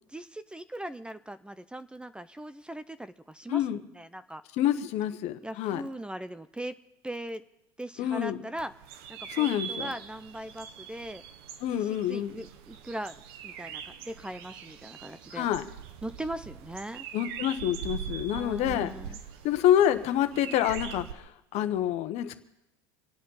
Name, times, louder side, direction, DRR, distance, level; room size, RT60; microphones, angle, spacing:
voice 1, 0.1-4.4 5.4-6.8 7.0-7.4 7.8-8.7 9.1-11.2 11.7-15.5 16.0-17.1 18.3-19.2, right 1 dB, 10° right, 13 dB, 0.6 m, -40 dB
voice 2, 4.6-5.8 8.0-8.4 9.3-9.9 11.6-12.3 15.4-15.6 17.1-18.9 19.4-22.4, left 11 dB, 60° left, 9 dB, 1.2 m, -27 dB
sound 1, 8.6-21.1, right 8 dB, 80° right, 1.1 m, -42 dB
25.5 x 8.6 x 5.7 m, 0.90 s
supercardioid pair, 95°, 13 cm